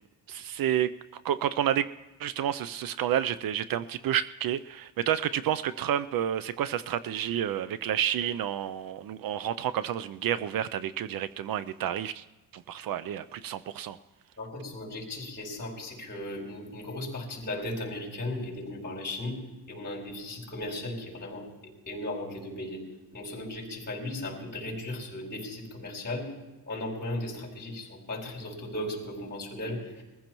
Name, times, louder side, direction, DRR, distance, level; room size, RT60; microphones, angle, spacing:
voice 1, 0.3-1.9 2.2-12.2 12.5-14.0, right 10 dB, 65° right, 15 dB, 0.5 m, -30 dB
voice 2, 14.4-19.4 19.7-22.8 23.1-26.3 26.7-30.0, left 1 dB, 25° left, -2 dB, 4.5 m, -36 dB
22.0 x 15.0 x 3.0 m, 1.1 s
cardioid pair, 150°, 38 cm